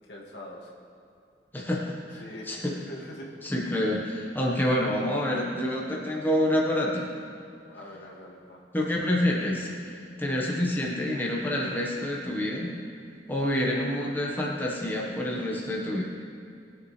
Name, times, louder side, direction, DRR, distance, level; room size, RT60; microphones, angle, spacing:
voice 1, 0.1-0.7 2.1-3.3 7.7-8.6, left 1 dB, 75° left, -2 dB, 2.0 m, -43 dB
voice 2, 1.5-2.2 2.5-2.7 3.4-7.1 8.7-12.7 13.3-16.0, left 1 dB, 10° left, -3 dB, 1.3 m, -27 dB
20.0 x 8.2 x 3.3 m, 2.5 s
head